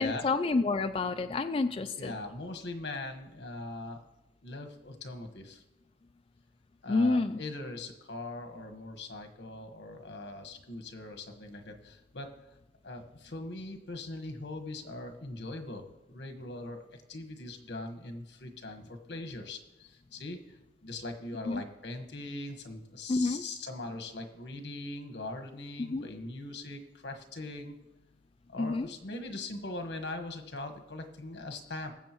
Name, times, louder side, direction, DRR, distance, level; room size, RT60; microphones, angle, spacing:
voice 1, 0.0-2.1 6.9-7.4 21.5-21.6 23.1-23.4 25.8-26.1 28.6-28.9, left 3 dB, 30° left, 7 dB, 0.3 m, -29 dB
voice 2, 1.9-4.0 4.4-5.6 6.8-12.3 12.8-27.8 28.5-31.9, left 2 dB, 80° left, 5 dB, 1.3 m, -41 dB
21.0 x 7.4 x 3.0 m, 0.99 s
head